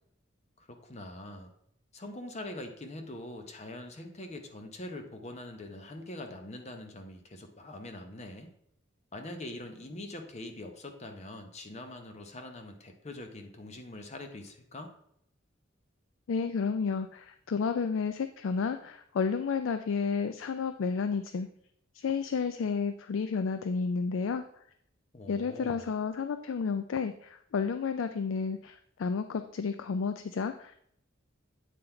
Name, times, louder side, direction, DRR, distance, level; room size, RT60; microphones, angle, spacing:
voice 1, 0.6-1.5 1.9-8.5 9.1-14.9 25.1-25.9, left 1 dB, 35° left, 5 dB, 0.8 m, -43 dB
voice 2, 16.3-21.5 21.9-24.4 25.3-30.8, left 5 dB, 80° left, 9 dB, 0.4 m, -31 dB
8.3 x 3.9 x 4.3 m, 0.70 s
head